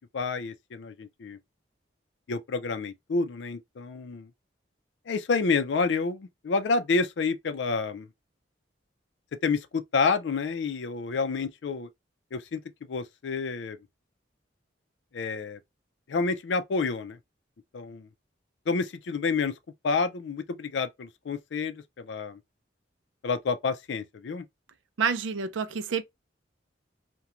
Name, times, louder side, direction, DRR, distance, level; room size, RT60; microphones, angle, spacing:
voice 1, 0.0-1.4 2.3-4.3 5.1-8.1 9.4-11.9 12.3-12.6 12.9-13.8 15.1-15.6 16.1-17.2 17.7-18.1 18.7-19.5 19.8-22.4 23.2-24.4, left 4 dB, 70° left, 0.4 m, -29 dB
voice 2, 25.0-26.0, right 6 dB, 85° right, 0.4 m, -28 dB
2.4 x 2.2 x 2.8 m
head